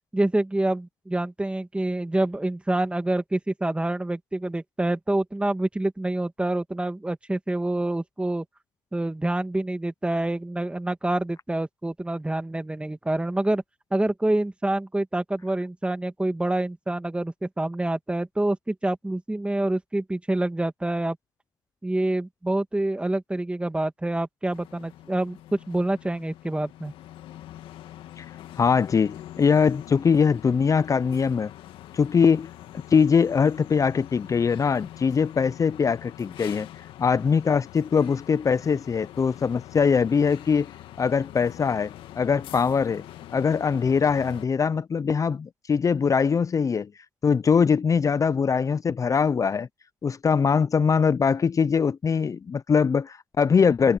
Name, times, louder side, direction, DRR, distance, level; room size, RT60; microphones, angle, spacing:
voice 1, 0.1-8.4 8.9-13.6 13.9-21.2 21.8-25.4 25.7-26.9, right 1 dB, 10° right, 2.6 m, -27 dB
sound 1, 24.5-44.5, left 13 dB, 70° left, 2.2 m, -44 dB
voice 2, 28.6-31.5 31.9-32.5 32.9-36.7 37.0-40.7 41.0-43.0 43.3-46.9 47.2-49.7 50.0-54.0, left 6 dB, 35° left, 0.7 m, -22 dB
hypercardioid pair, 60°, 9 cm